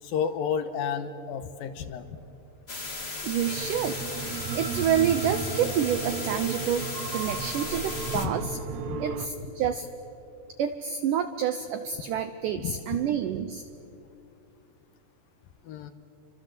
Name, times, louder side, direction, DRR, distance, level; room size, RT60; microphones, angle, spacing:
voice 1, 0.0-2.2 8.2-8.3 8.9-9.0 12.6-13.0 15.6-15.9, left 7 dB, 70° left, 9 dB, 2.5 m, -32 dB
sound 1, 2.7-8.3, left 3 dB, 45° left, 0.8 m, -36 dB
voice 2, 3.2-6.9 7.1-8.6 9.0-9.9 10.6-13.6, right 9 dB, 85° right, 9 dB, 1.8 m, -28 dB
sound 2, 3.4-9.3, right 5 dB, 65° right, 2.0 m, -35 dB
29.0 x 25.0 x 7.7 m, 2.7 s
omnidirectional pair, 4.8 m